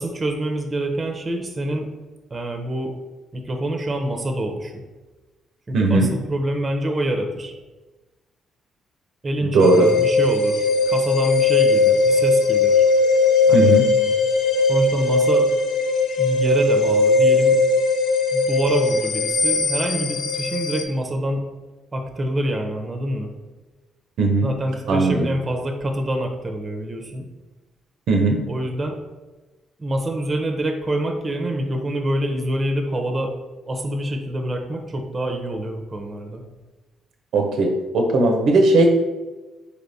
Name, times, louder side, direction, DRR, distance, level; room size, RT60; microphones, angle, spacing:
voice 1, 0.0-1.9 2.3-2.9 3.3-4.8 5.7-7.5 9.2-12.8 13.5-13.7 14.7-15.5 16.2-17.6 18.3-21.4 21.9-23.3 24.4-27.3 28.5-29.0 29.8-33.3 33.7-36.4, right 1 dB, 30° right, 4 dB, 0.6 m, -26 dB
voice 2, 5.7-6.1 9.5-9.9 13.5-13.9 24.2-24.5 24.9-25.3 28.1-28.5 37.3-38.9, right 2 dB, 75° right, 3 dB, 0.5 m, -17 dB
sound 1, 9.6-20.8, left 3 dB, 80° left, 0.4 m, -19 dB
4.3 x 3.3 x 2.6 m, 1.2 s
cardioid pair, 90°, 0 cm